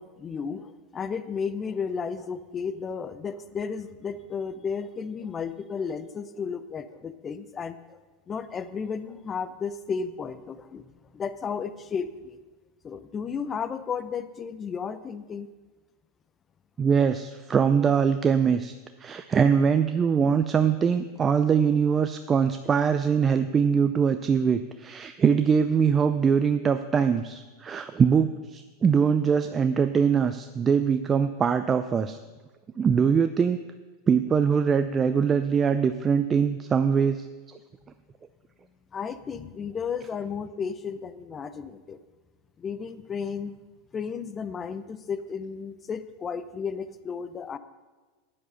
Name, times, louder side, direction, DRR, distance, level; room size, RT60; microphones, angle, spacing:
voice 1, 0.0-8.0 8.3-10.9 11.1-12.4 12.8-15.5 38.9-42.0 42.6-43.5 43.9-47.6, left 6 dB, 25° left, 14 dB, 0.7 m, -33 dB
voice 2, 16.8-18.7 19.0-32.2 32.8-33.6 34.1-37.6, right 6 dB, 25° right, 9 dB, 0.5 m, -23 dB
10.5 x 8.8 x 5.6 m, 1.3 s
hypercardioid pair, 100°, 0 cm